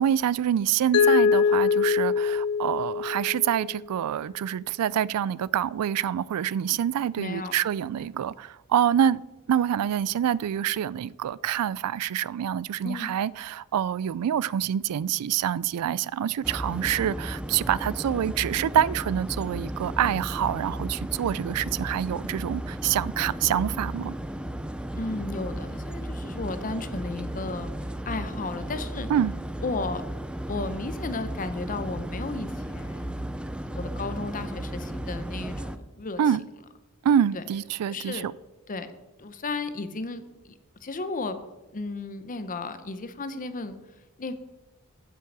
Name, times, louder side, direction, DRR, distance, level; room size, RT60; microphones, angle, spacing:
voice 1, 0.0-9.2 9.5-24.1 29.1-29.3 36.2-36.4 37.0-38.3, right 9 dB, 85° right, 0.3 m, -26 dB
Mallet percussion, 0.9-3.8, left 6 dB, 70° left, 0.4 m, -23 dB
voice 2, 7.2-7.5 7.9-8.0 12.8-13.1 25.0-27.7 28.1-29.1 29.6-30.0 30.5-33.2 33.7-36.2 37.3-37.4 37.9-38.3 38.7-38.9 39.2-40.5 40.8-41.4 41.7-43.8 44.2-44.3, left 3 dB, 35° left, 0.7 m, -34 dB
sound 1, 16.4-35.8, right 1 dB, 5° right, 0.4 m, -34 dB
9.3 x 5.9 x 7.3 m
head